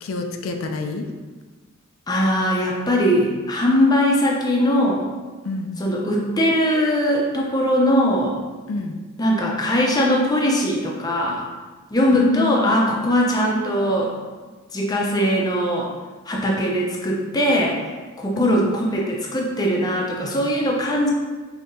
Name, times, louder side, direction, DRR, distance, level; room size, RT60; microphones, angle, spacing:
voice 1, 0.0-1.1 5.4-5.7 8.7-9.0 12.2-13.1 18.4-18.7, left 3 dB, 85° left, 4 dB, 0.4 m, -27 dB
voice 2, 2.1-5.1 5.8-8.4 9.2-11.5 11.9-14.1 14.7-15.9 16.3-17.9 18.2-21.1, equal, 20° left, -2 dB, 0.5 m, -20 dB
5.4 x 2.8 x 2.6 m, 1.3 s
head